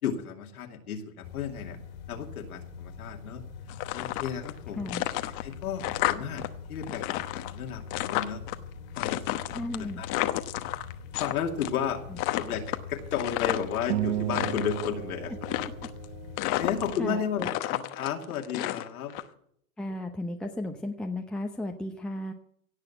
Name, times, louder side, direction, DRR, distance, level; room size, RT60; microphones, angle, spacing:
voice 1, 0.0-1.8 2.1-3.4 3.9-4.9 5.4-6.4 6.7-8.4 9.0-9.4 9.8-10.1 11.2-12.0 12.4-15.3 16.6-19.1, left 8 dB, 90° left, 2 dB, 2.6 m, -33 dB
sound 1, 1.2-17.0, left 6 dB, 70° left, 2.6 m, -44 dB
sound 2, 3.7-4.6 4.9-6.5 6.7-8.6 9.0-11.3 11.6-11.9 12.2-13.8 14.2-14.9 15.4-16.0 16.4-17.1 17.4-19.2, left 16 dB, 45° left, 1.1 m, -31 dB
voice 2, 9.5-10.0 12.1-12.2 15.8-15.9 16.5-16.6 17.0-17.5 19.8-22.3, left 1 dB, ahead, 1 dB, 0.8 m, -34 dB
sound 3, 13.9-16.5, right 16 dB, 75° right, 0.5 m, -33 dB
17.5 x 6.8 x 7.9 m, 0.68 s
supercardioid pair, 125°, 43 cm